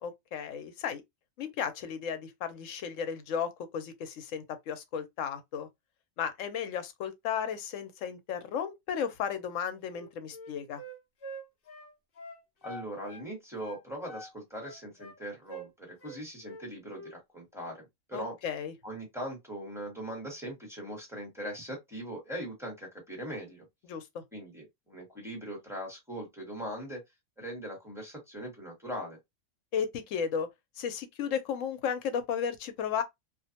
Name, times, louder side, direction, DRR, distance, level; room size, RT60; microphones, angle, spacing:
voice 1, 0.0-1.0 1.4-5.7 6.2-10.8 18.1-18.7 23.9-24.2 29.7-30.5 30.8-33.0, left 7 dB, 80° left, 1.0 m, -34 dB
Wind instrument woodwind instrument, 9.8-13.3 13.6-15.2 15.5-15.7 16.0-16.7 16.9-17.2, right 1 dB, 55° left, 0.7 m, -46 dB
voice 2, 12.6-18.3 18.8-23.7 24.3-27.0 27.4-29.2, right 1 dB, ahead, 1.1 m, -40 dB
2.5 x 2.1 x 2.7 m
omnidirectional pair, 1.3 m